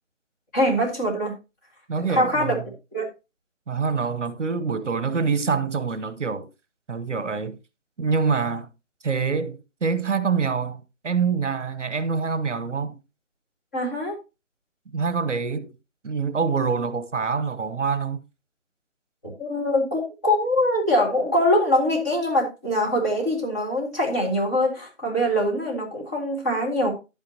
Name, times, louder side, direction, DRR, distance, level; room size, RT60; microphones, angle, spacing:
voice 1, 0.5-1.3 2.1-2.6 2.9-3.1 13.7-14.1 19.4-26.9, left 1 dB, 15° left, 1.8 m, -23 dB
voice 2, 1.9-2.7 3.7-6.5 6.9-7.6 8.0-8.7 9.0-13.0 14.9-15.7 16.0-18.2, right 5 dB, 65° right, 1.1 m, -25 dB
10.5 x 8.9 x 2.9 m
figure-of-eight pair, 170°, 39 cm